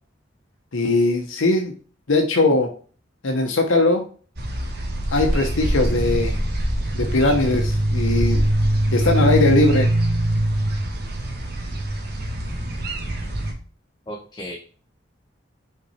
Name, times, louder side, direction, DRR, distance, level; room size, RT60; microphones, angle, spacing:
voice 1, 0.7-1.7 2.1-2.7 3.2-4.1 5.1-6.4 6.9-8.5 8.9-9.9, left 2 dB, 85° left, 3 dB, 0.9 m, -20 dB
sound 1, 4.4-13.5, right 1 dB, 55° right, 1.5 m, -23 dB
voice 2, 14.1-14.6, equal, 20° left, -1 dB, 1.0 m, -34 dB
5.7 x 4.5 x 4.3 m, 0.40 s
head